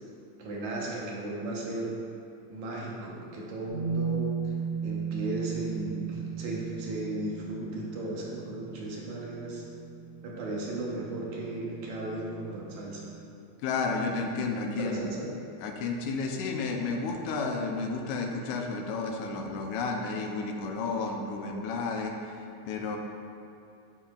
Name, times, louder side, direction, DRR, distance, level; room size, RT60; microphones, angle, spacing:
voice 1, 0.4-1.9 2.5-4.3 4.8-9.6 10.2-13.1 14.8-15.3, right 2 dB, 75° right, -3 dB, 2.4 m, -35 dB
sound 1, 3.6-13.1, right 6 dB, 50° left, 0.7 m, -37 dB
voice 2, 13.6-15.1 15.6-23.0, left 4 dB, 80° left, 1 dB, 2.1 m, -32 dB
9.7 x 6.8 x 2.3 m, 2.7 s
omnidirectional pair, 3.4 m